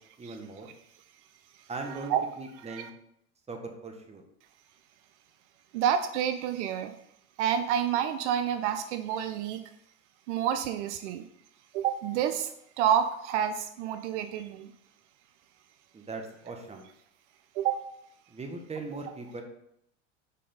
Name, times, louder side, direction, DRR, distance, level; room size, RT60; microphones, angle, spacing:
voice 1, 0.2-0.7 1.7-2.9 3.5-4.2 15.9-16.9 18.3-19.4, right 3 dB, 15° right, 4 dB, 1.4 m, -39 dB
voice 2, 1.8-2.2 2.7-2.9 5.7-6.9 7.4-9.6 10.3-11.3 11.7-12.5 12.8-14.7 17.5-17.8, right 9 dB, 70° right, 9 dB, 0.6 m, -29 dB
6.7 x 5.0 x 3.8 m, 0.75 s
hypercardioid pair, 95°, 36 cm